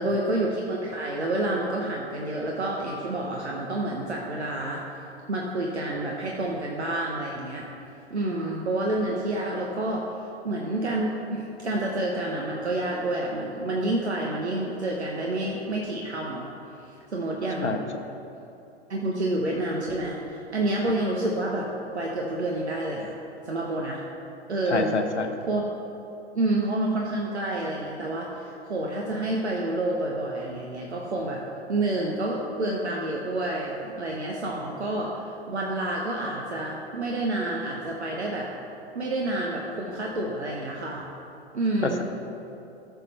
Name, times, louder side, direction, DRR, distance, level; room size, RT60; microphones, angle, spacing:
voice 1, 0.0-4.8 5.3-7.7 8.1-16.5 16.8-17.8 18.9-21.7 21.9-23.1 23.4-24.0 24.5-25.0 25.5-25.6 26.3-31.4 31.7-38.5 38.9-41.1 41.5-42.0, right 1 dB, 80° right, -2 dB, 1.1 m, -29 dB
voice 2, 24.7-25.3 41.8-42.0, left 4 dB, 85° left, 4 dB, 0.8 m, -26 dB
14.0 x 5.7 x 4.3 m, 2.9 s
figure-of-eight pair, 100°, 33 cm